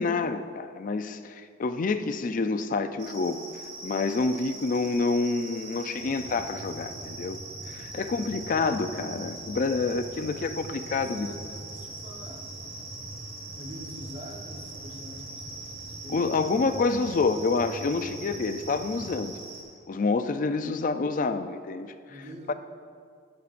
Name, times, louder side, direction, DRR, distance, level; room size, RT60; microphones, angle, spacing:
voice 1, 0.0-3.4 3.8-7.4 7.7-11.3 16.1-19.3 19.9-21.9 22.5-22.6, left 4 dB, 45° left, 10 dB, 0.4 m, -28 dB
sound 1, 3.0-19.6, right 3 dB, 80° right, 2.1 m, -42 dB
sound 2, 6.0-19.2, right 1 dB, 10° right, 2.1 m, -45 dB
voice 2, 10.9-12.6 13.6-16.7 20.3-20.9 22.1-22.5, equal, 35° right, 1 dB, 1.0 m, -46 dB
12.5 x 9.4 x 2.5 m, 2.1 s
head